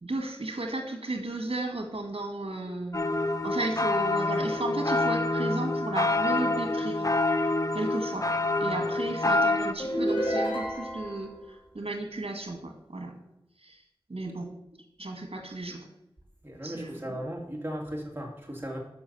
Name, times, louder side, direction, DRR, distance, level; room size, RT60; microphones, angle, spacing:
voice 1, 0.0-3.0 3.4-7.1 7.7-8.3 8.6-13.1 13.6-13.8 14.1-14.5 15.0-15.9 16.6-17.2, right 2 dB, 80° right, 4 dB, 1.7 m, -34 dB
sound 1, 2.9-9.7, left 2 dB, 35° left, 0.7 m, -27 dB
sound 2, 9.8-11.3, equal, 55° left, 3.3 m, -29 dB
voice 2, 16.4-18.8, equal, 20° right, -1 dB, 2.6 m, -36 dB
7.0 x 5.9 x 6.9 m, 0.86 s
wide cardioid pair, 50°, 10 cm